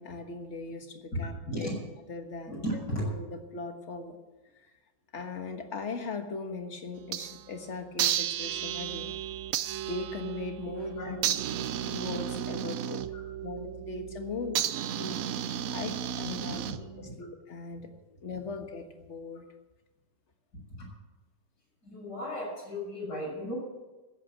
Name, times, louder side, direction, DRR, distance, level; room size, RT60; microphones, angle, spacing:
voice 1, 0.0-1.7 2.1-2.6 3.0-4.2 5.1-9.1 9.9-11.4 11.9-13.0 13.4-14.6 15.0-17.9 18.2-19.5, left 4 dB, 40° left, 6 dB, 1.6 m, -39 dB
voice 2, 1.1-1.7 2.5-3.0 10.8-11.1 13.1-13.2 16.4-17.2 20.8-20.9 21.8-23.6, equal, 65° left, -4 dB, 7.1 m, -36 dB
sound 1, 7.0-7.5 8.0-17.1, right 10 dB, 65° right, 0.9 m, -33 dB
15.0 x 8.5 x 7.6 m, 1.2 s
omnidirectional pair, 1.9 m